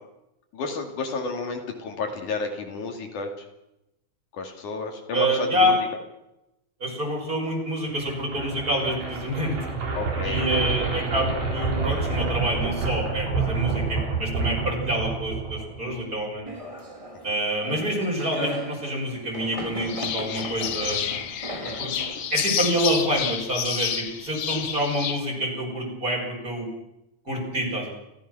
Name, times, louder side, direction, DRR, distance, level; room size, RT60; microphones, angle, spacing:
voice 1, 0.5-3.5 4.3-5.7 9.9-10.8 12.1-12.3 17.3-17.4 24.5-24.6, left 4 dB, 75° left, 3 dB, 4.0 m, -32 dB
voice 2, 5.1-5.8 6.8-9.7 10.2-16.5 17.2-21.0 21.6-21.9 22.3-26.7 27.2-27.9, equal, 25° right, -1 dB, 6.5 m, -27 dB
sound 1, 7.9-16.0, right 4 dB, 90° right, 6.0 m, -28 dB
sound 2, 16.5-23.5, right 1 dB, 10° right, 2.1 m, -37 dB
sound 3, 19.9-25.2, left 9 dB, 60° left, 1.8 m, -30 dB
29.0 x 15.0 x 6.2 m, 0.89 s
omnidirectional pair, 3.5 m